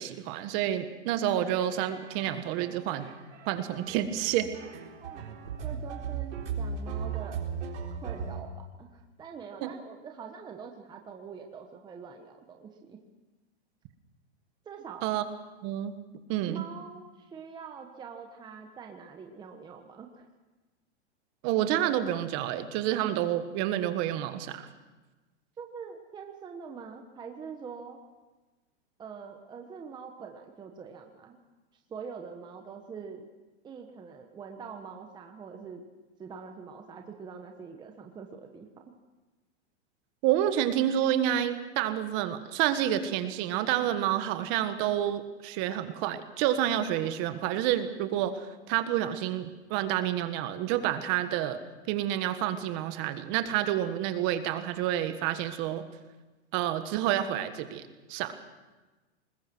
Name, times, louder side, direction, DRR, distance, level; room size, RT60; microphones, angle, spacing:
voice 1, 0.0-3.1 3.5-4.5 9.6-9.7 15.0-15.2 15.6-15.9 16.3-16.7 21.4-24.7 40.2-51.6 51.9-55.8 56.5-58.4, right 11 dB, 35° right, 9 dB, 1.5 m, -29 dB
sound 1, 1.7-8.4, right 6 dB, 90° right, 4.0 m, -37 dB
voice 2, 5.6-7.4 7.9-8.5 8.8-13.0 14.6-15.1 16.4-20.3 25.6-28.0 29.0-31.4 31.9-33.2 33.6-35.8 36.2-38.7, right 6 dB, 15° right, 3 dB, 1.1 m, -44 dB
21.0 x 20.5 x 6.2 m, 1.2 s
supercardioid pair, 150°, 34 cm